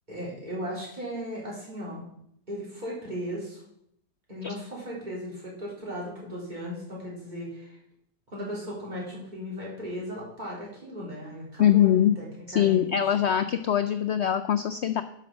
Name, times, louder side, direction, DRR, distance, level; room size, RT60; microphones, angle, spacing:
voice 1, 0.1-2.0 2.5-3.6 4.3-7.8 8.3-13.1, equal, 25° right, -5 dB, 3.9 m, -37 dB
voice 2, 11.6-12.2 12.5-15.0, left 10 dB, 80° left, 9 dB, 0.6 m, -22 dB
11.0 x 6.0 x 6.0 m, 0.73 s
omnidirectional pair, 1.7 m